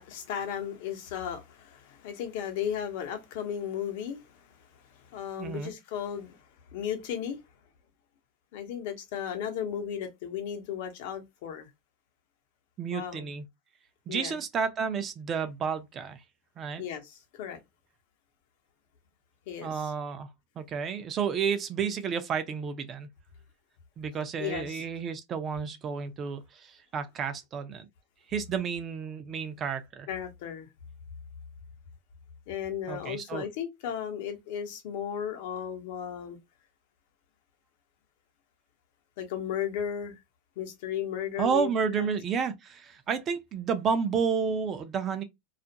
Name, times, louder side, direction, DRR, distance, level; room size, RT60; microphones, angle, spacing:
voice 1, 0.0-4.5 5.0-6.4 6.7-7.4 8.5-11.7 12.9-13.3 14.1-14.4 16.8-17.6 19.5-19.9 24.4-24.8 30.1-30.7 32.5-36.4 39.2-40.1 40.6-42.1, left 9 dB, 70° left, 0.8 m, -35 dB
voice 2, 5.4-5.7 12.8-13.5 14.1-16.2 16.6-16.8 19.6-20.3 20.6-23.1 24.0-27.9 28.3-30.1 32.9-33.5 41.4-45.2, right 6 dB, 30° right, 0.5 m, -31 dB
2.4 x 2.1 x 2.7 m
supercardioid pair, 125°, 0 cm